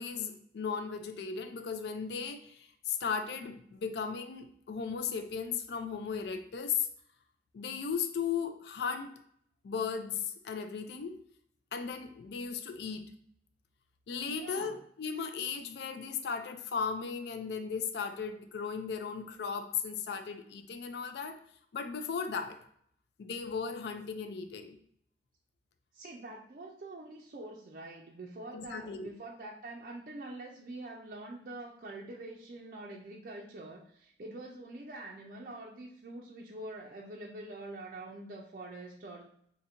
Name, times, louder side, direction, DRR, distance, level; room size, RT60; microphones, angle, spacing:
voice 1, 0.0-6.9 7.5-9.2 9.6-11.2 11.7-13.1 14.1-21.4 21.7-22.6 23.2-24.8 28.5-29.1, left 6 dB, 70° left, 8 dB, 0.4 m, -36 dB
voice 2, 14.3-14.8 25.9-39.3, right 2 dB, 50° right, -1 dB, 0.4 m, -45 dB
2.6 x 2.5 x 4.2 m, 0.66 s
head